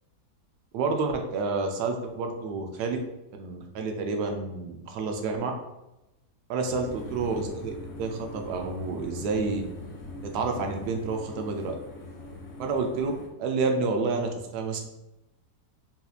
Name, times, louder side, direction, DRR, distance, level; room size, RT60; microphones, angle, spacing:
voice 1, 0.7-3.0 3.3-5.5 6.5-9.6 10.2-11.8 12.6-13.1 13.4-14.8, right 4 dB, 75° right, 3 dB, 1.1 m, -29 dB
sound 1, 6.7-13.3, left 1 dB, 70° left, 1.3 m, -41 dB
4.1 x 2.6 x 2.4 m, 0.95 s
omnidirectional pair, 1.8 m